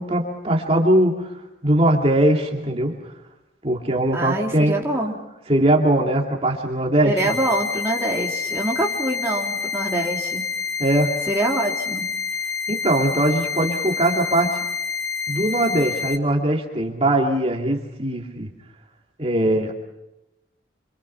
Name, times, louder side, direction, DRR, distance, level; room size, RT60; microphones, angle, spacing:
voice 1, 0.0-1.3 1.6-3.1 3.6-4.8 5.5-7.3 10.8-11.1 12.4-14.6 15.3-18.5 19.2-19.7, right 1 dB, 30° right, 0 dB, 2.6 m, -21 dB
voice 2, 4.1-5.1 7.0-10.5 11.3-12.1, right 1 dB, 15° right, -2 dB, 2.8 m, -25 dB
sound 1, 7.2-16.2, left 6 dB, 60° left, 1.4 m, -28 dB
27.0 x 26.0 x 5.8 m, 0.93 s
head